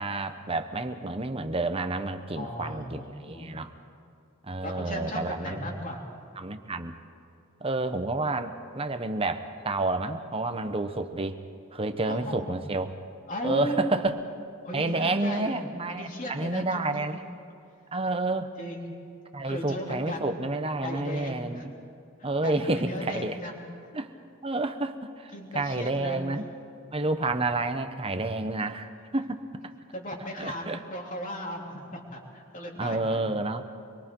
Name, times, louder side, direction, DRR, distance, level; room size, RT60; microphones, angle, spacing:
voice 1, 0.0-3.7 4.4-5.8 6.4-7.0 7.6-11.4 11.7-12.9 13.4-14.1 14.7-17.2 17.9-18.6 19.3-21.7 22.2-23.4 23.9-24.1 24.4-26.4 26.9-29.7 30.4-30.8 32.8-33.6, right 2 dB, 25° right, 8 dB, 1.0 m, -30 dB
voice 2, 2.3-3.5 4.6-6.0 12.0-12.6 13.3-14.0 14.6-15.5 15.9-17.2 18.6-19.0 19.4-20.4 20.8-21.7 22.2-23.6 25.3-26.2 29.9-33.2, equal, 40° left, 0 dB, 3.2 m, -36 dB
25.0 x 23.0 x 4.6 m, 2.6 s
head